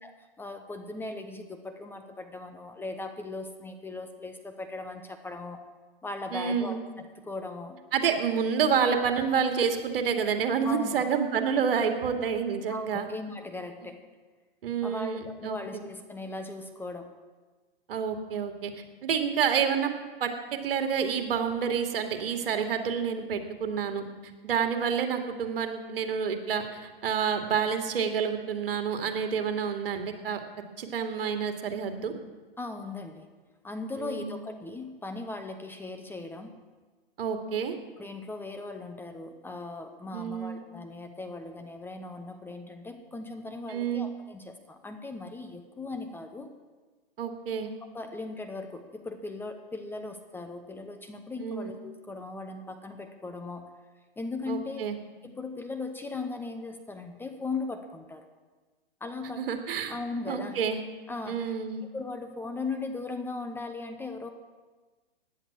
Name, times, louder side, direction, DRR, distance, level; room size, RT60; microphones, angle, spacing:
voice 1, 0.0-5.6 6.0-7.8 10.6-11.0 12.7-14.0 14.8-17.1 27.0-27.1 32.6-33.3 33.6-36.6 38.0-46.5 47.9-53.7 54.2-54.8 55.2-58.3 59.0-59.5 59.9-60.6 61.1-61.5 61.9-64.3, left 3 dB, 5° left, 6 dB, 0.8 m, -38 dB
voice 2, 6.3-6.8 7.9-13.1 14.6-15.6 17.9-18.7 19.0-19.9 20.2-24.0 24.4-30.4 30.8-32.1 34.0-34.4 37.2-37.8 40.1-40.6 43.7-44.1 47.2-47.7 51.4-51.7 54.5-55.0 59.4-59.9 60.3-60.8 61.3-61.8, right 7 dB, 70° right, 5 dB, 2.4 m, -28 dB
16.5 x 10.5 x 7.4 m, 1.3 s
hypercardioid pair, 135°, 30 cm